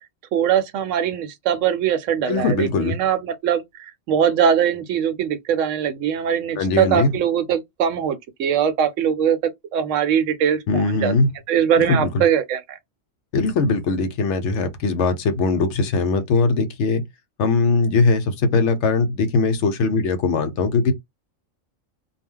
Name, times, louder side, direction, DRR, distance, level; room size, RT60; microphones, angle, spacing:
voice 1, 0.3-9.4 9.7-11.1 11.5-12.8, right 8 dB, 80° right, 0.9 m, -21 dB
voice 2, 2.3-3.0 6.6-7.1 10.7-11.3 11.8-12.1 13.3-17.0 17.4-20.9, left 3 dB, 70° left, 0.9 m, -20 dB
2.2 x 2.1 x 3.5 m
omnidirectional pair, 1.3 m